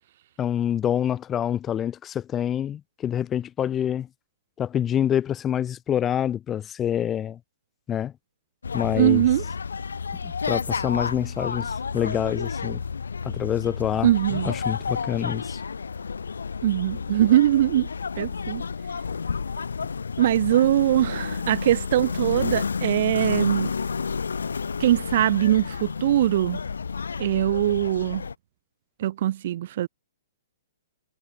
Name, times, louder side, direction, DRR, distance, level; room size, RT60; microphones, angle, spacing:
voice 1, 0.4-4.1 4.6-7.4 7.9-8.1 8.7-9.2 10.2-12.8 13.2-15.6, left 10 dB, 20° left, 7.1 m, -26 dB
sound 1, 8.6-28.3, left 5 dB, 80° left, 2.2 m, -31 dB
voice 2, 9.0-9.4 14.0-14.5 16.6-17.9 18.2-18.6 20.2-23.7 24.8-26.6 27.2-28.2 29.0-29.9, right 12 dB, 55° right, 3.4 m, -22 dB
hypercardioid pair, 120°, 0 cm